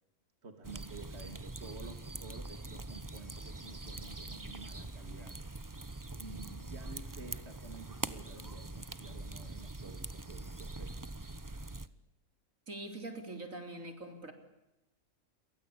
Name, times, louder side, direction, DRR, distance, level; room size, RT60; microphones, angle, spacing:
voice 1, 0.4-5.4 6.2-11.0, right 3 dB, 45° right, 6 dB, 2.9 m, -51 dB
sound 1, 0.6-11.9, right 2 dB, 15° right, 0.9 m, -43 dB
voice 2, 12.7-14.3, right 2 dB, 65° right, 6 dB, 4.2 m, -43 dB
29.5 x 23.5 x 8.6 m, 0.96 s
omnidirectional pair, 1.5 m